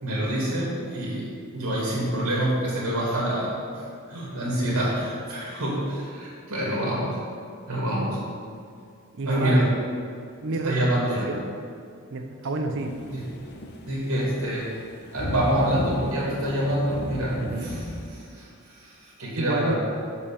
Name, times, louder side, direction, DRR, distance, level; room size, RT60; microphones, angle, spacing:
voice 1, 0.0-1.3 1.5-7.2 7.7-8.2 9.3-9.7 10.6-11.3 13.1-13.3 13.8-14.8 15.1-19.8, right 1 dB, 90° right, -5 dB, 2.3 m, -26 dB
voice 2, 9.1-9.7 10.4-10.7 11.3-11.5 12.1-13.0 17.4-17.7 19.4-19.8, right 2 dB, 60° right, 4 dB, 0.6 m, -29 dB
sound 1, 12.8-18.1, left 1 dB, 50° left, 0.8 m, -35 dB
6.7 x 5.3 x 7.0 m, 2.4 s
head